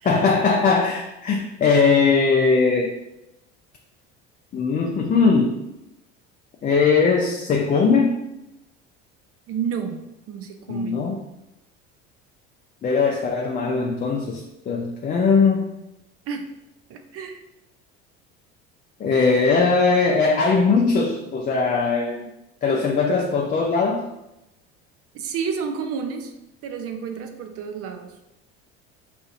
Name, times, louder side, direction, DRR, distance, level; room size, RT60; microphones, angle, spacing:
voice 1, 0.0-2.9 4.5-5.6 6.6-8.2 10.7-11.2 12.8-14.4 14.7-15.7 19.0-22.3 22.6-24.0, left 4 dB, 30° left, 0 dB, 0.4 m, -20 dB
voice 2, 9.5-11.0 16.3-16.4 16.9-17.4 25.1-26.3 26.6-28.1, right 6 dB, 50° right, 6 dB, 0.5 m, -30 dB
4.1 x 2.5 x 2.6 m, 0.90 s
supercardioid pair, 85°, 30 cm